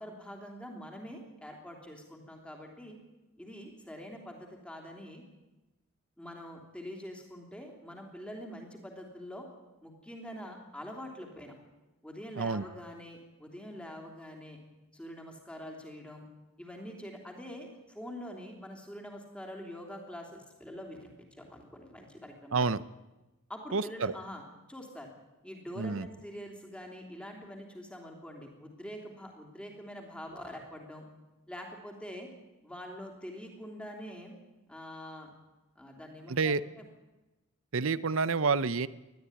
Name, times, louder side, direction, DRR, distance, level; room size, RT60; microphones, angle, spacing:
voice 1, 0.0-3.0 3.4-5.2 6.2-9.5 9.8-11.5 12.0-14.6 14.9-16.2 16.6-22.7 23.5-24.4 24.7-25.1 25.4-31.0 31.5-32.3 32.6-34.3 34.7-35.3 35.7-36.5, equal, 5° left, 2 dB, 3.3 m, -45 dB
voice 2, 22.5-22.8 23.7-24.1 25.8-26.1 36.3-36.6 37.7-38.9, right 4 dB, 60° right, 16 dB, 0.7 m, -28 dB
20.0 x 13.0 x 9.8 m, 1.1 s
head